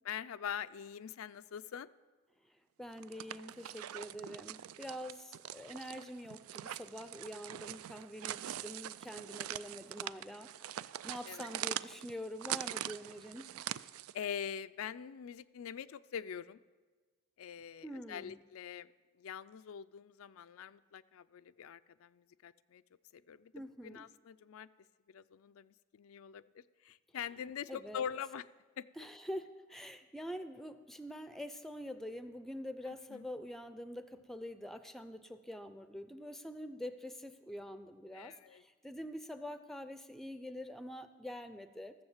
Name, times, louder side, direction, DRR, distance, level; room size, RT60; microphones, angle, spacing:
voice 1, 0.0-1.9 9.1-9.2 11.3-11.5 14.1-16.6 17.4-18.9 19.2-22.8 23.1-23.5 23.8-24.7 25.1-28.5 28.8-28.9 32.9-33.2 38.1-38.6, left 8 dB, 80° left, 13 dB, 0.4 m, -44 dB
voice 2, 2.8-13.8 17.8-18.4 23.5-24.0 27.7-28.1 29.0-41.9, equal, ahead, 10 dB, 0.5 m, -45 dB
sound 1, 2.9-14.3, right 12 dB, 85° right, 0.3 m, -43 dB
15.0 x 7.1 x 7.3 m, 1.3 s
head